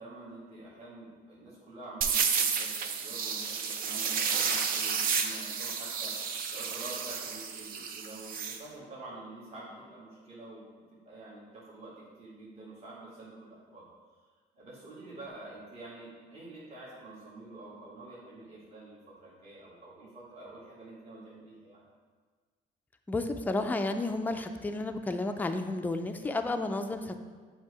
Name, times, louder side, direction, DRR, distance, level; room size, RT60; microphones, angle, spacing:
voice 1, 0.0-10.6 11.0-13.8 14.5-21.8, right 2 dB, 35° right, -8 dB, 1.6 m, -47 dB
sound 1, 2.0-8.6, right 6 dB, 60° right, 0.6 m, -31 dB
voice 2, 23.1-27.2, left 2 dB, 10° left, 6 dB, 0.4 m, -32 dB
7.5 x 2.8 x 4.7 m, 1.5 s
cardioid pair, 110°, 17 cm